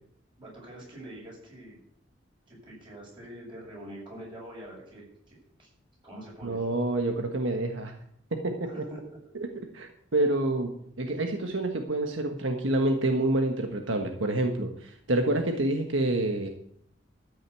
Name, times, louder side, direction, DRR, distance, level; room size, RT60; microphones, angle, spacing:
voice 1, 0.4-1.8 2.5-5.7 6.0-6.6 8.7-9.0, right 1 dB, 25° right, -3 dB, 7.0 m, -45 dB
voice 2, 6.4-7.9 8.3-8.7 9.3-10.7 11.0-16.5, right 2 dB, 75° right, 4 dB, 1.4 m, -28 dB
13.5 x 6.6 x 8.5 m, 0.67 s
head